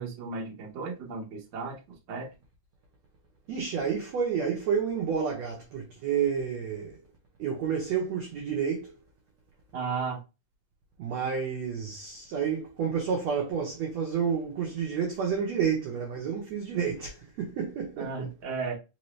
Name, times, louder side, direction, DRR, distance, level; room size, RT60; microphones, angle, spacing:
voice 1, 0.0-1.8 2.1-2.3 9.7-10.2 18.0-18.7, right 4 dB, 55° right, 1.3 m, -34 dB
voice 2, 3.5-7.0 7.4-8.9 11.0-18.3, right 7 dB, 70° right, 1.6 m, -30 dB
5.2 x 2.8 x 3.1 m
omnidirectional pair, 4.1 m